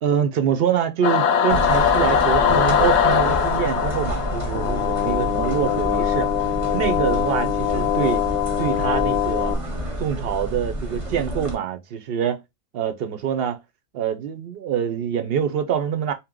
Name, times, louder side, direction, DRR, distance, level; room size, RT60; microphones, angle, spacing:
voice 1, 0.0-6.3 6.7-8.2 8.6-9.5 10.0-12.4 12.7-13.6 13.9-16.1, right 8 dB, 70° right, 0.8 m, -25 dB
Singing / Musical instrument, 1.0-5.7, left 7 dB, 90° left, 0.9 m, -21 dB
sound 1, 1.5-11.5, right 1 dB, 35° right, 0.8 m, -29 dB
sound 2, 4.5-9.5, left 11 dB, 60° left, 0.7 m, -23 dB
2.9 x 2.0 x 3.6 m
omnidirectional pair, 1.1 m